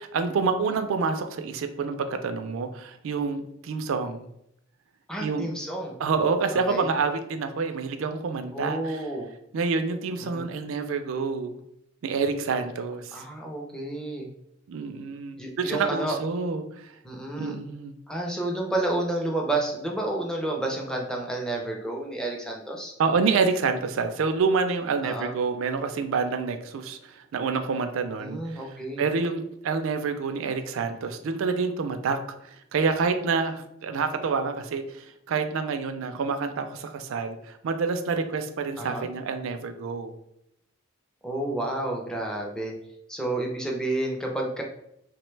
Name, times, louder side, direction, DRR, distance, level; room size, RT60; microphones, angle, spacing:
voice 1, 0.0-4.3 5.2-5.5 6.0-9.0 9.5-11.6 12.0-13.2 14.7-16.9 17.4-17.9 23.0-28.6 29.0-40.1, right 4 dB, 70° right, 8 dB, 0.4 m, -28 dB
voice 2, 5.1-6.0 6.5-6.9 8.5-9.3 10.3-10.5 13.1-14.3 15.4-16.2 17.0-17.6 18.1-22.9 25.0-25.3 28.2-29.0 38.8-39.1 41.2-42.7 43.1-44.6, right 2 dB, 5° left, 0 dB, 0.5 m, -30 dB
3.1 x 2.1 x 3.1 m, 0.78 s
head